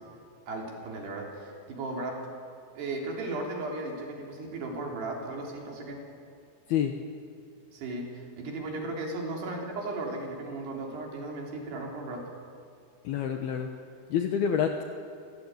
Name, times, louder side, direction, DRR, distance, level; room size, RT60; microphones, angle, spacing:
voice 1, 0.5-2.3 2.8-6.0 7.7-12.2, right 2 dB, 60° right, 0 dB, 5.3 m, -36 dB
voice 2, 13.0-13.7 14.1-14.9, left 8 dB, 70° left, 5 dB, 2.5 m, -27 dB
26.5 x 17.5 x 9.4 m, 2.3 s
omnidirectional pair, 5.7 m